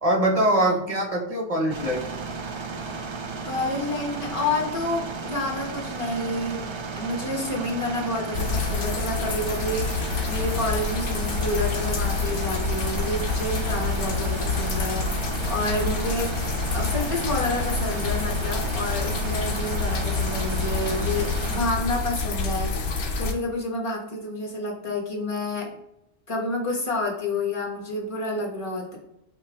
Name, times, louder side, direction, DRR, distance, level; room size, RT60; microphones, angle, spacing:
voice 1, 0.0-2.0, right 1 dB, 35° right, 0 dB, 0.9 m, -23 dB
sound 1, 1.7-21.6, right 4 dB, 50° right, 0.3 m, -34 dB
voice 2, 3.4-16.3 16.7-25.7 26.3-29.0, left 2 dB, 30° left, -1 dB, 1.2 m, -29 dB
sound 2, 8.3-23.3, left 4 dB, 65° left, 0.9 m, -27 dB
5.5 x 2.6 x 3.4 m, 0.85 s
omnidirectional pair, 1.2 m